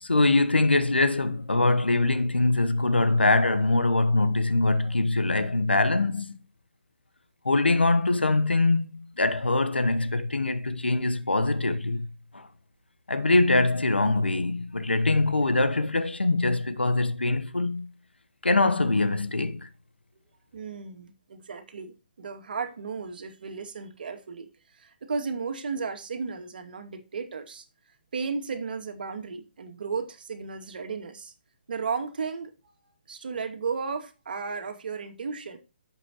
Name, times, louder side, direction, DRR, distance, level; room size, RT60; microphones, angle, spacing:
voice 1, 0.0-6.4 7.4-12.1 12.3-12.5 13.1-17.9 18.4-19.7, left 2 dB, 90° left, 1.1 m, -23 dB
voice 2, 20.5-24.5 24.8-27.6 28.1-31.3 31.7-32.5 33.1-35.6, right 5 dB, 60° right, 2.3 m, -34 dB
11.5 x 7.4 x 3.0 m
figure-of-eight pair, 145°, 6 cm